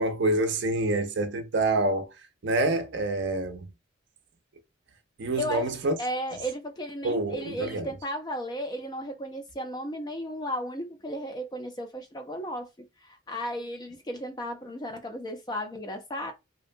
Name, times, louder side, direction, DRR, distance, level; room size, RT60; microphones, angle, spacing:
voice 1, 0.0-2.1 2.4-3.7 5.2-5.9 7.0-7.9, right 2 dB, 55° right, 0.5 m, -27 dB
voice 2, 5.4-5.7 6.0-16.3, equal, 20° left, 0.4 m, -35 dB
2.6 x 2.2 x 2.6 m
head